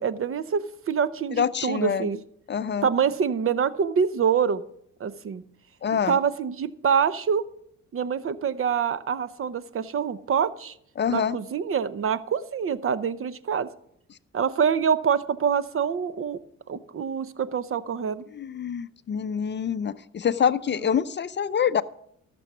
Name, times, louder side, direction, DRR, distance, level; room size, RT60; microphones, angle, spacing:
voice 1, 0.0-2.2 2.8-4.6 5.0-5.4 6.1-7.5 7.9-10.7 11.1-13.7 14.3-16.4 16.7-18.2, right 7 dB, 45° right, 15 dB, 0.8 m, -25 dB
voice 2, 1.3-2.1 2.5-2.9 5.8-6.2 11.0-11.4 18.3-21.8, left 7 dB, 35° left, 13 dB, 0.5 m, -26 dB
15.0 x 7.0 x 6.1 m, 0.69 s
cardioid pair, 90°, 30 cm